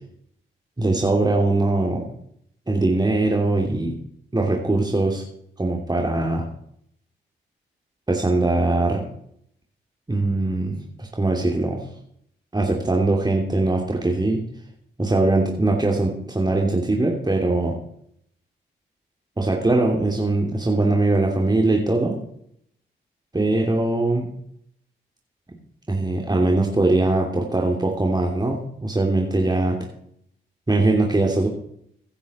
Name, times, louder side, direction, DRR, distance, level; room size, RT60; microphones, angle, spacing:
voice 1, 0.8-2.1 2.7-3.9 4.3-5.2 5.6-6.5 8.1-9.0 10.1-11.8 12.5-14.4 15.0-17.7 19.4-22.2 23.3-24.3 25.5-25.6 25.9-29.8 30.7-31.5, right 2 dB, 20° right, 0 dB, 2.8 m, -21 dB
16.5 x 10.0 x 4.3 m, 0.70 s
supercardioid pair, 45°, 21 cm